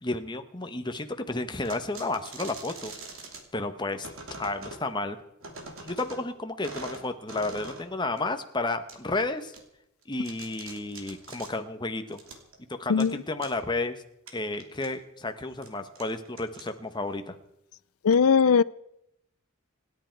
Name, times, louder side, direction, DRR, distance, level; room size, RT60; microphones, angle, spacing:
voice 1, 0.0-2.9 3.5-4.1 4.4-5.2 5.8-9.5 10.1-12.2 12.8-14.0 14.3-17.3, left 2 dB, 20° left, 7 dB, 1.1 m, -32 dB
sound 1, 1.6-3.4 4.0-4.8 5.4-6.3 6.6-7.9 8.2-8.3 8.9-9.0 9.5-9.6 10.0-11.5 12.1-12.6 13.0-13.1 13.4-13.5 14.3-14.9 15.5-15.7 16.0-17.0, right 3 dB, 65° right, 2.9 m, -43 dB
voice 2, 18.0-18.6, left 6 dB, 80° left, 20 dB, 0.5 m, -19 dB
27.0 x 10.5 x 4.6 m, 0.80 s
head